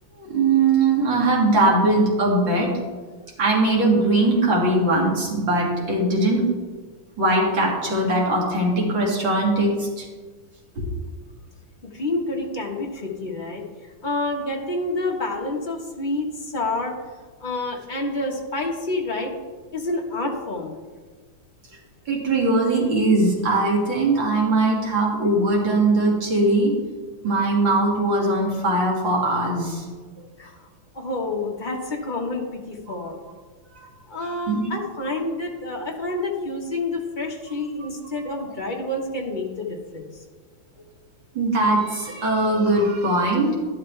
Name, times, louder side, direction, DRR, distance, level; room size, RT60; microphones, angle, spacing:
voice 1, 0.2-2.8 3.4-6.5 7.2-10.1 10.8-10.9 22.1-26.8 27.2-29.8 32.9-33.0 33.7-33.9 34.5-34.7 41.3-43.5, right 2 dB, 65° right, -3 dB, 3.1 m, -20 dB
voice 2, 11.8-16.9 17.4-19.3 19.7-20.7 30.4-30.7 30.9-33.2 34.1-40.2, left 2 dB, 25° left, 0 dB, 1.3 m, -28 dB
11.5 x 11.5 x 3.4 m, 1.4 s
omnidirectional pair, 2.3 m